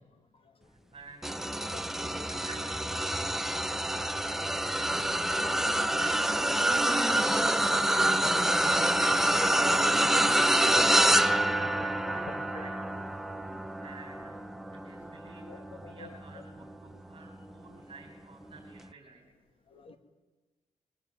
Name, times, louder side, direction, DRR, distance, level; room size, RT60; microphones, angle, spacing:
voice 1, 0.7-3.2 4.2-8.7 9.3-11.3 11.7-12.8 13.8-14.4 14.8-19.3, right 4 dB, 45° right, -1 dB, 5.6 m, -51 dB
sound 1, 1.2-16.7 17.3-17.5 18.8-18.9, right 1 dB, 5° right, 0.8 m, -27 dB
voice 2, 1.6-2.3 3.5-3.8 10.7-10.8 11.5-12.2 12.5-12.6 13.3-13.6 15.5-16.1 19.7-20.0, left 2 dB, 45° left, 8 dB, 2.4 m, -49 dB
23.0 x 18.0 x 9.5 m, 1.3 s
wide cardioid pair, 130°, 13 cm